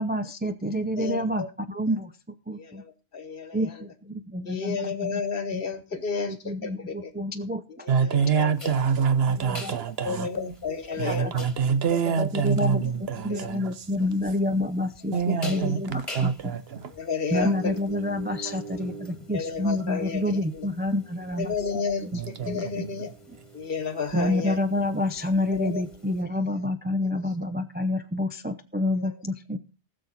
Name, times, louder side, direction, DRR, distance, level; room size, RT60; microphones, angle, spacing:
voice 1, 0.0-2.8 3.5-5.2 5.5-5.6 6.3-7.9 9.4-9.7 10.1-10.5 10.9-11.3 11.9-12.8 13.2-16.5 17.3-21.5 22.0-22.2 22.5-22.8 23.3-23.4 24.1-29.6, left 1 dB, 10° right, 0.5 m, -28 dB
voice 2, 1.0-1.5 2.5-3.7 4.4-7.1 7.8-8.7 10.0-11.5 13.3-13.5 15.3-15.6 16.9-17.7 19.3-20.7 21.4-23.1 23.5-24.6 25.5-25.8 26.4-26.5 29.0-29.1, left 5 dB, 55° left, 1.4 m, -32 dB
voice 3, 7.9-10.3 11.0-13.7 15.1-16.9 18.4-18.5 22.1-22.9, right 6 dB, 65° right, 1.0 m, -26 dB
sound 1, 8.6-26.2, right 1 dB, 30° left, 1.8 m, -44 dB
19.5 x 6.6 x 4.1 m
omnidirectional pair, 1.1 m